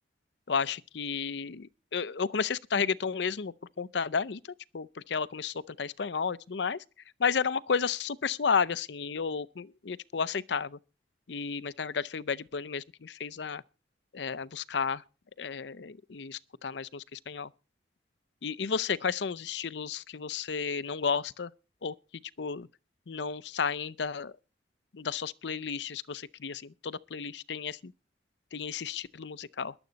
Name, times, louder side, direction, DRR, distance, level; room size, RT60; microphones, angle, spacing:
voice 1, 0.5-6.8 7.2-10.8 11.3-13.6 14.1-15.0 15.4-17.5 18.4-21.5 21.8-21.9 22.4-22.7 23.1-24.3 24.9-27.9 28.5-29.7, left 6 dB, 75° left, 0.6 m, -32 dB
22.0 x 7.9 x 4.1 m
head